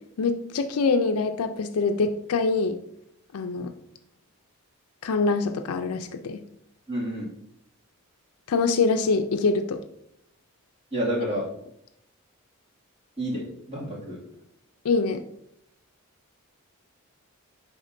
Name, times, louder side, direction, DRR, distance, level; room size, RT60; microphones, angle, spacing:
voice 1, 0.2-2.8 3.3-3.7 5.0-6.4 8.5-9.8 14.8-15.2, left 4 dB, 80° left, 7 dB, 0.4 m, -24 dB
voice 2, 6.9-7.3 10.9-11.5 13.2-14.2, equal, 30° right, -7 dB, 2.3 m, -29 dB
10.0 x 3.6 x 2.6 m, 0.75 s
head